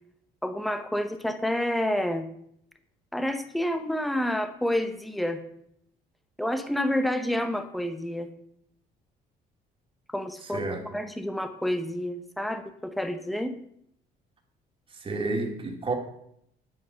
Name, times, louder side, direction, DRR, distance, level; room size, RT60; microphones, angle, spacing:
voice 1, 0.4-2.3 3.1-5.4 6.4-8.3 10.1-13.6, left 1 dB, ahead, 0.9 m, -29 dB
voice 2, 10.5-10.9 14.9-15.9, right 3 dB, 30° right, 2.2 m, -30 dB
9.3 x 8.6 x 5.7 m
cardioid pair, 110°, 17 cm